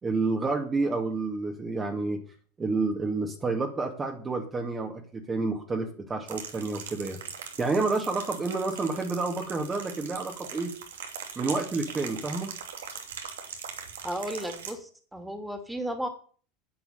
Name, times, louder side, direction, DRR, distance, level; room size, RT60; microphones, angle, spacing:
voice 1, 0.0-2.2 2.6-7.2 7.6-10.7 11.4-12.5, right 3 dB, 20° right, 2 dB, 2.4 m, -29 dB
sound 1, 6.3-14.7, right 7 dB, 70° right, 2.7 m, -41 dB
voice 2, 14.0-16.1, right 1 dB, 5° right, 7 dB, 3.1 m, -34 dB
10.5 x 9.8 x 7.1 m, 0.43 s
figure-of-eight pair, 75°, 0 cm